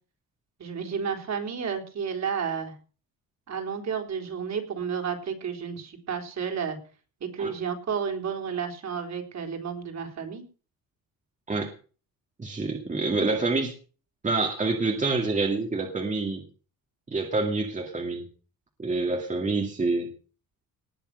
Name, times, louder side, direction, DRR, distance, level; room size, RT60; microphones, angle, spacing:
voice 1, 0.6-2.7 3.5-6.8 7.2-10.5, right 6 dB, 50° right, 4 dB, 3.9 m, -31 dB
voice 2, 12.4-13.7 14.2-16.4 17.1-18.3 18.8-20.1, right 3 dB, 20° right, 2 dB, 2.2 m, -27 dB
19.5 x 6.9 x 6.6 m, 0.38 s
cardioid pair, 145°, 36 cm